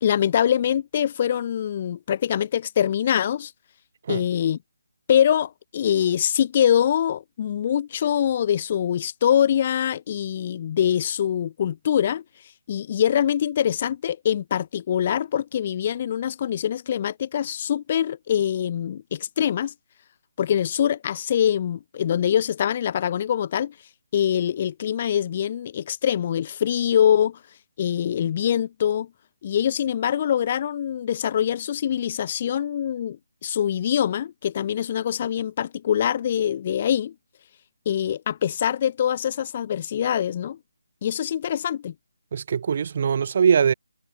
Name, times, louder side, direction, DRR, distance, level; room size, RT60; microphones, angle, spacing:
voice 1, 0.0-3.5 4.1-4.6 5.1-12.2 12.7-19.7 20.4-23.7 24.1-27.4 27.8-29.1 29.4-37.1 37.9-40.6 41.0-41.9, left 9 dB, 30° left, 0.7 m, -24 dB
voice 2, 42.3-43.7, right 7 dB, 40° right, 0.6 m, -21 dB
figure-of-eight pair, 160°, 0 cm